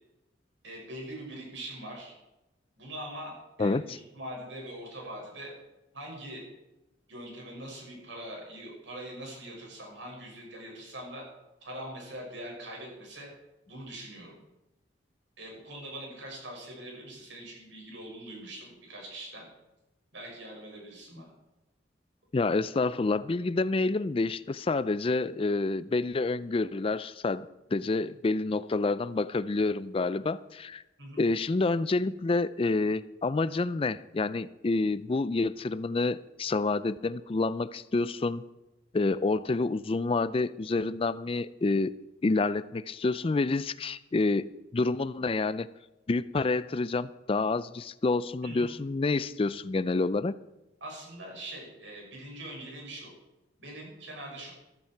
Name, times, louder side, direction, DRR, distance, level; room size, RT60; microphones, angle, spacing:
voice 1, 0.6-2.1 2.8-5.5 5.9-6.4 7.1-11.2 11.6-13.3 13.7-14.3 15.4-19.5 20.1-21.3 31.0-31.2 48.4-48.7 50.8-53.1 53.6-54.5, right 1 dB, 75° right, -1 dB, 6.3 m, -42 dB
voice 2, 3.6-4.0 22.3-30.8 31.2-38.4 38.9-41.9 42.2-45.7 46.1-50.4, left 3 dB, 30° left, 16 dB, 0.4 m, -28 dB
14.5 x 13.0 x 4.6 m, 0.97 s
head